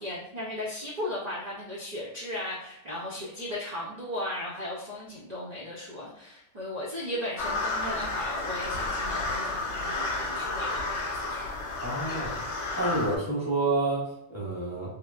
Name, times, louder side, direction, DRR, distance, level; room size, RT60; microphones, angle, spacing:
voice 1, 0.0-11.6, left 1 dB, 50° right, -5 dB, 0.5 m, -36 dB
sound 1, 7.4-13.2, left 2 dB, 75° left, 0.9 m, -31 dB
voice 2, 11.8-12.4 12.8-14.9, right 2 dB, 15° left, -7 dB, 0.8 m, -29 dB
3.1 x 2.0 x 2.2 m, 0.83 s
omnidirectional pair, 1.3 m